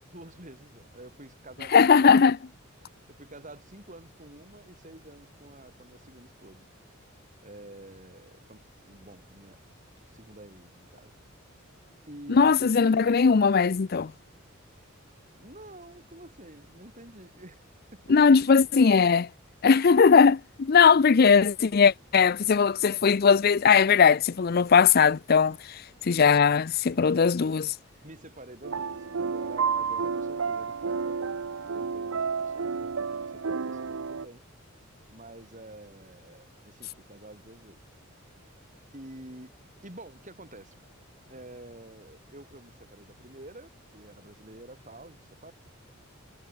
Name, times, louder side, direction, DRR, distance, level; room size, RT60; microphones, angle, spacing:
voice 1, 0.1-2.2 2.8-6.7 7.4-9.6 10.0-11.1 12.1-12.8 15.4-17.6 17.9-18.9 28.0-34.4 35.1-37.8 38.9-39.5 39.8-40.7 41.3-45.5, right 1 dB, 35° right, 5.7 m, -48 dB
voice 2, 1.7-2.4 12.3-14.1 18.1-19.3 19.6-27.7, left 6 dB, 45° left, 0.5 m, -19 dB
sound 1, 28.6-34.3, right 5 dB, 80° right, 0.7 m, -31 dB
head